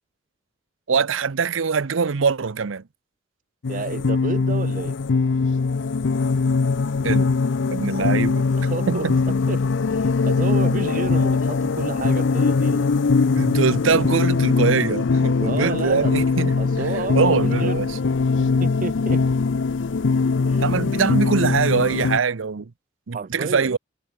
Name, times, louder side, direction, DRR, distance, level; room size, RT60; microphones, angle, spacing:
voice 1, 0.9-2.8 7.0-7.3 7.7-8.4 8.9-9.2 13.3-16.9 17.1-18.0 20.6-22.7 23.1-23.8, right 5 dB, 85° right, 0.7 m, -23 dB
sound 1, 3.6-22.2, left 4 dB, 70° left, 0.5 m, -21 dB
voice 2, 3.7-5.0 8.0-8.1 8.6-9.1 9.5-9.6 9.9-12.9 15.4-16.1 16.6-17.8 18.4-19.2 20.5-20.6 23.1-23.8, right 4 dB, 45° right, 0.5 m, -30 dB
head